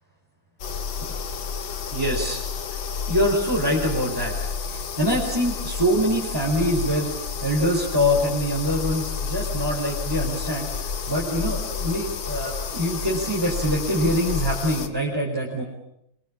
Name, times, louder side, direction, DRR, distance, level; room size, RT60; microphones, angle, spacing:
sound 1, 0.6-14.9, left 6 dB, 85° left, 2.4 m, -30 dB
voice 1, 1.9-2.4 3.1-4.3 4.6-7.1 7.4-10.7 11.1-15.6, equal, 10° right, -3 dB, 4.7 m, -24 dB
26.5 x 22.5 x 8.8 m, 0.79 s
omnidirectional pair, 2.0 m